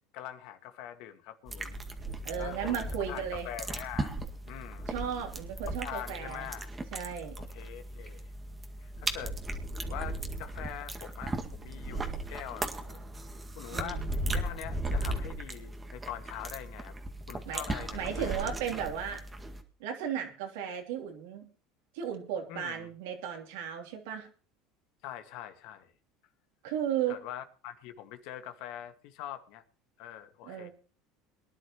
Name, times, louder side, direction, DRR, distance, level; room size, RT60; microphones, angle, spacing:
voice 1, 0.1-1.8 2.4-4.2 4.5-4.9 5.8-6.7 7.5-8.3 8.8-9.3 9.9-13.1 13.6-14.0 14.3-16.9 17.3-18.5 22.5-22.9 25.0-25.9 27.1-29.6 30.0-30.7, left 11 dB, 70° left, 1.7 m, -43 dB
sound 1, 1.5-19.6, right 2 dB, 20° right, 1.9 m, -37 dB
voice 2, 2.2-3.5 4.9-6.5 6.9-7.4 13.7-14.1 17.4-17.6 17.9-19.2 19.8-21.4 21.9-24.3 26.6-27.2 30.4-30.7, right 8 dB, 80° right, 3.1 m, -35 dB
23.0 x 11.0 x 3.0 m
supercardioid pair, 95°, 0 cm